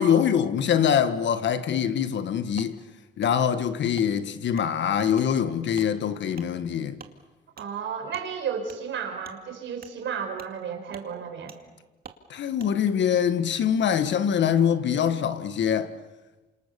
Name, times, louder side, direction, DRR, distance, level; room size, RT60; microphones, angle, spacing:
voice 1, 0.0-2.8 3.2-7.0 12.3-15.9, left 8 dB, 65° left, 1.6 m, -24 dB
Wood, 2.6-2.7 3.2-3.3 3.9-4.1 4.5-4.7 5.1-5.3 5.7-5.9 6.3-6.5 7.0-7.1 7.6-7.7 8.1-8.3 8.7-8.8 9.2-9.4 9.8-9.9 10.4-10.5 10.9-11.1 11.5-11.6 12.0-12.2 12.6-12.7, right 7 dB, 50° right, 2.4 m, -47 dB
voice 2, 7.6-11.6, right 7 dB, 70° right, 5.2 m, -33 dB
28.0 x 27.0 x 7.0 m
cardioid pair, 90°, 20 cm